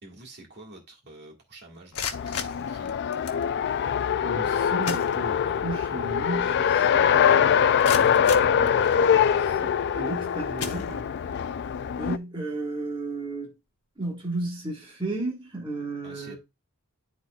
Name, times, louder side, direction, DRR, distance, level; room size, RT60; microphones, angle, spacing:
voice 1, 0.0-2.9 16.0-16.4, right 2 dB, 50° right, 1.7 m, -48 dB
sound 1, 1.7-3.5 4.4-4.5 4.8-5.7 6.1-6.2 6.7-6.8 7.4-9.3 9.9-10.1 10.6-11.4, left 7 dB, 80° left, 1.0 m, -36 dB
Race car auto racing, 2.1-12.2, left 8 dB, 50° left, 0.3 m, -23 dB
voice 2, 4.2-11.1 12.0-13.5 14.0-16.4, right 2 dB, 20° right, 1.5 m, -34 dB
11.0 x 4.2 x 2.3 m
head